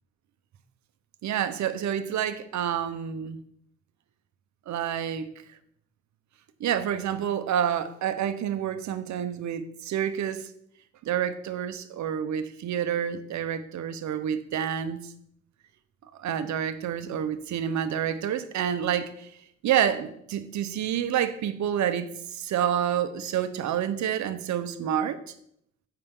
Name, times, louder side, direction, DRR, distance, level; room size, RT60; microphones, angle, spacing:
voice 1, 1.2-3.4 4.7-5.3 6.6-10.5 11.0-15.1 16.2-19.3 19.6-25.2, right 9 dB, 70° right, 10 dB, 1.0 m, -28 dB
15.0 x 5.8 x 3.8 m, 0.71 s
cardioid pair, 90°, 30 cm